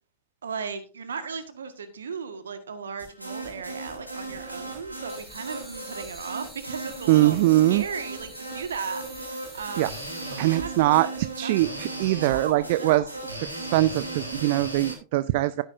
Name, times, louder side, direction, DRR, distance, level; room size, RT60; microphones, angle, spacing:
voice 1, 0.4-7.4 7.7-9.9 10.3-11.2 11.4-11.6 12.1-13.1, right 5 dB, 70° right, 11 dB, 1.7 m, -36 dB
sound 1, 3.0-15.0, right 2 dB, 85° right, 3.0 m, -37 dB
sound 2, 5.1-10.8, right 1 dB, 5° right, 3.5 m, -48 dB
voice 2, 7.1-7.8 9.8-9.9 10.4-13.1 13.7-15.6, right 16 dB, 50° right, 16 dB, 0.4 m, -22 dB
12.5 x 9.9 x 2.7 m, 0.34 s
figure-of-eight pair, 90°, 0 cm